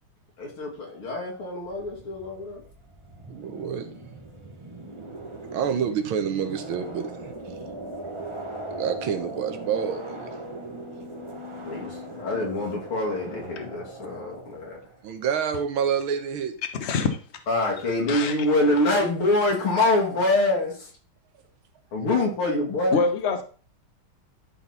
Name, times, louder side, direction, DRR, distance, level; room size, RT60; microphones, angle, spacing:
voice 1, 0.4-2.6 11.7-14.8 17.5-20.9 21.9-23.1, left 2 dB, 75° left, 3.2 m, -25 dB
sound 1, 1.6-15.0, right 1 dB, 25° right, 0.6 m, -39 dB
voice 2, 3.3-3.9 5.5-7.6 8.7-10.4 15.0-16.6 21.3-21.4, right 7 dB, 75° right, 1.7 m, -28 dB
voice 3, 16.8-17.2 18.1-18.3 22.9-23.4, left 4 dB, 45° left, 1.0 m, -24 dB
12.0 x 4.0 x 4.1 m
omnidirectional pair, 2.3 m